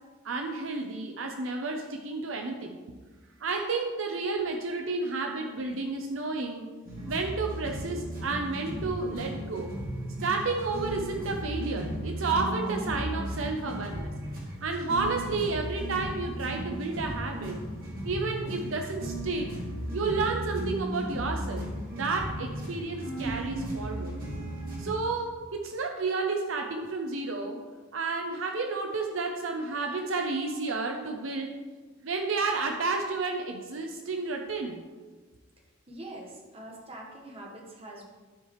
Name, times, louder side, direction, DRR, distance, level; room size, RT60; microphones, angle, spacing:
voice 1, 0.2-2.8 3.4-6.7 7.1-9.7 10.2-14.1 14.6-17.6 18.0-19.5 19.9-21.7 22.0-24.2 24.8-27.6 27.9-31.5 32.0-34.8, right 3 dB, 75° right, 3 dB, 0.7 m, -31 dB
sound 1, 6.8-24.9, right 1 dB, 50° right, 1.8 m, -35 dB
voice 2, 35.9-38.1, right 1 dB, 30° right, -1 dB, 1.3 m, -44 dB
13.0 x 4.8 x 3.1 m, 1.4 s
head